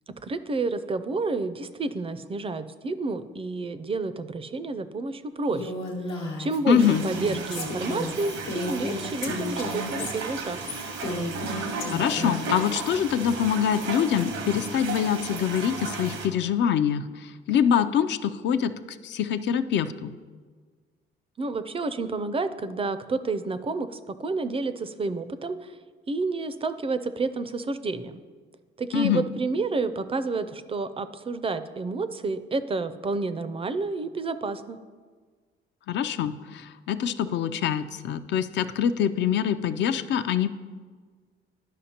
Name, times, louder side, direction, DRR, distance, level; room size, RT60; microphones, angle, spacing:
voice 1, 0.2-5.7 6.1-10.6 21.4-25.8 26.1-28.2 28.8-34.8, right 3 dB, 30° right, 12 dB, 0.4 m, -30 dB
Female speech woman speaking, 5.5-12.5, left 2 dB, 85° left, 1.1 m, -33 dB
voice 2, 6.7-7.0 11.5-11.6 11.9-17.1 17.5-18.7 19.0-20.1 28.9-29.2 35.9-40.5, left 8 dB, 65° left, 10 dB, 0.4 m, -24 dB
sound 1, 6.8-16.3, right 3 dB, 85° right, 0.9 m, -34 dB
11.5 x 5.0 x 2.8 m, 1.5 s
cardioid pair, 90°, 20 cm